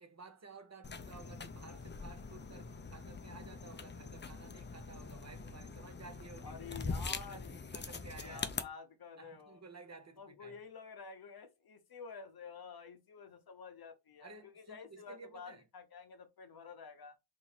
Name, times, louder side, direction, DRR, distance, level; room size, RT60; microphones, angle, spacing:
voice 1, 0.0-6.8 7.1-8.5 9.2-10.6 14.2-15.6, right 4 dB, 30° right, 0.7 m, -54 dB
sound 1, 0.8-8.6, left 4 dB, 25° left, 0.4 m, -43 dB
voice 2, 6.4-7.5 8.2-9.6 10.2-17.2, left 5 dB, 45° left, 0.8 m, -50 dB
3.0 x 2.7 x 3.9 m
wide cardioid pair, 95°, 50 cm